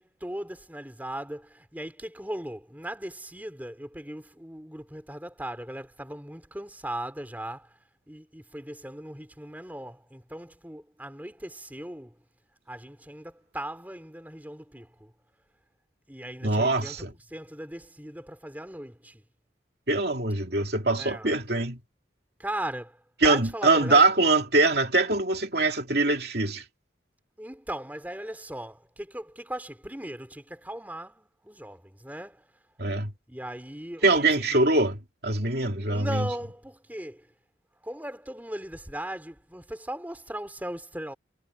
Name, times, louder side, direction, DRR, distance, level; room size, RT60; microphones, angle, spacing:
voice 1, 0.0-7.8 8.1-12.2 12.7-15.1 16.1-19.2 21.0-21.3 22.4-24.1 27.4-32.5 33.3-34.9 35.7-37.3 37.8-41.1, right 1 dB, 10° right, 4.0 m, -38 dB
voice 2, 16.4-17.1 19.9-21.8 23.2-26.6 32.8-33.1 34.0-35.0 35.2-36.1, right 3 dB, 55° right, 2.8 m, -23 dB
head